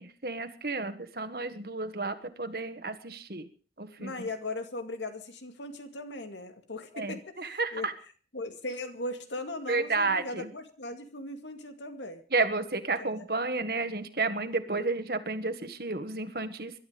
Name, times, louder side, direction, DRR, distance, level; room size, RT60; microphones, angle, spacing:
voice 1, 0.0-3.5 3.8-4.3 6.9-7.9 9.7-10.5 12.3-16.7, right 3 dB, 55° right, 9 dB, 1.6 m, -31 dB
voice 2, 4.0-7.9 8.3-12.2 13.0-13.1, left 2 dB, 90° left, 7 dB, 2.3 m, -38 dB
21.0 x 12.0 x 5.1 m, 0.42 s
head